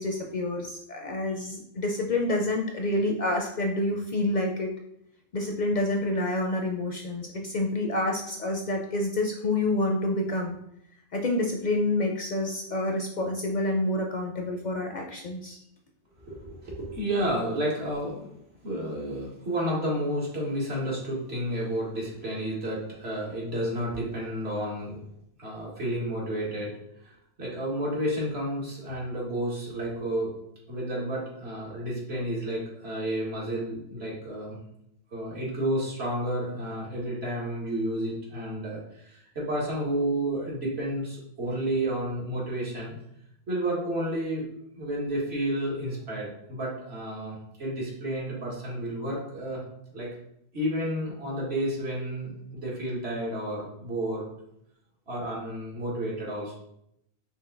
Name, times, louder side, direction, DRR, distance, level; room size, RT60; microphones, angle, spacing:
voice 1, 0.0-4.7 5.3-10.6 11.1-15.6, left 2 dB, 55° left, 2 dB, 0.5 m, -28 dB
voice 2, 16.2-18.3 18.6-25.0 25.4-26.7 27.0-27.1 27.4-30.3 30.7-34.6 35.1-43.0 43.5-49.6 49.9-50.1 50.5-54.3 55.1-56.5, right 1 dB, 70° right, -4 dB, 1.8 m, -31 dB
5.3 x 2.6 x 3.8 m, 0.75 s
omnidirectional pair, 1.1 m